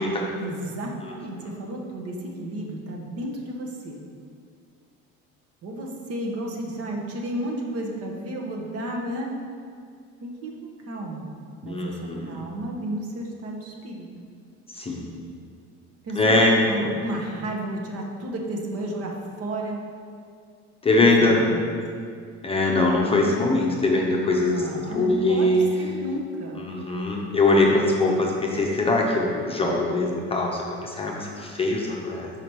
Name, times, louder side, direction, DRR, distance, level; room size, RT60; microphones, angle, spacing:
voice 1, 0.0-4.0 5.6-9.4 10.2-11.3 11.6-14.1 16.0-19.8 20.9-21.6 21.9-22.1 24.4-25.5 25.8-26.6, right 1 dB, 45° right, 0 dB, 1.1 m, -32 dB
voice 2, 11.6-12.4 14.7-15.2 16.2-16.9 20.8-21.5 22.4-25.6 26.6-32.3, left 2 dB, 15° left, -2 dB, 0.8 m, -22 dB
5.0 x 5.0 x 4.5 m, 2.2 s
supercardioid pair, 105°, 33 cm